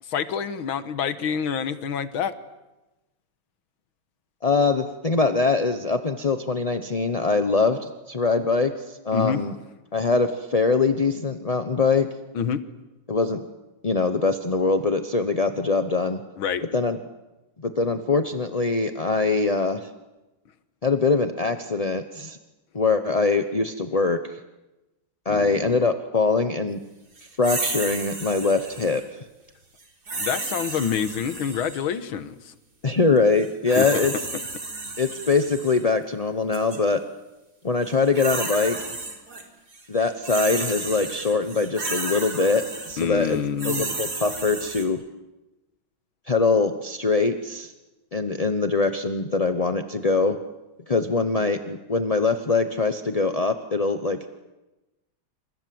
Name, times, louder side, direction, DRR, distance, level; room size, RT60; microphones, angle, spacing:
voice 1, 0.0-2.3 9.1-9.4 12.3-12.6 16.4-16.6 25.3-25.8 30.2-32.6 33.8-34.1 43.0-43.9, left 7 dB, 85° left, 12 dB, 2.1 m, -27 dB
voice 2, 4.4-9.5 9.9-12.1 13.1-13.4 13.8-16.2 16.7-17.0 17.6-19.9 20.8-22.4 22.7-24.4 25.2-26.8 27.4-29.2 32.8-34.1 35.0-37.0 37.6-38.8 39.9-43.4 43.6-45.0 46.3-47.7 48.1-50.4 50.9-54.3, left 4 dB, 30° left, 8 dB, 0.6 m, -23 dB
sound 1, 27.4-29.0 30.1-31.9 33.4-35.8 36.5-36.8 37.8-39.4 39.7-44.9, right 3 dB, 50° right, 4.4 m, -32 dB
28.0 x 27.0 x 7.8 m, 1.0 s
omnidirectional pair, 2.2 m